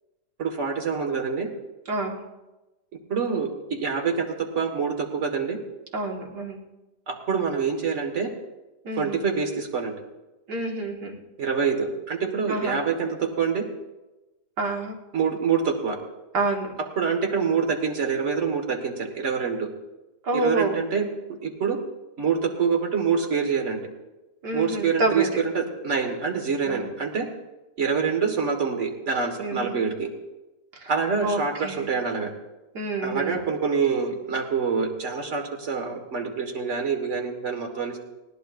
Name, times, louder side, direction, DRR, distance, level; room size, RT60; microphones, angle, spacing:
voice 1, 0.4-1.5 3.1-5.6 7.1-8.3 9.0-9.9 11.4-13.7 15.1-16.0 17.0-19.7 20.3-21.1 21.4-21.8 22.2-23.8 24.5-27.3 27.8-30.1 30.9-32.3 33.0-38.0, right 5 dB, 45° right, 4 dB, 1.9 m, -26 dB
voice 2, 1.9-2.2 5.9-6.6 8.8-9.2 10.5-11.2 12.5-12.8 14.6-15.0 16.3-16.7 20.2-20.8 24.4-25.3 26.7-26.9 29.4-29.8 30.8-30.9 31.2-31.9 32.7-33.4, right 2 dB, 85° right, 0 dB, 2.3 m, -28 dB
20.0 x 17.0 x 2.5 m, 1.1 s
omnidirectional pair, 1.7 m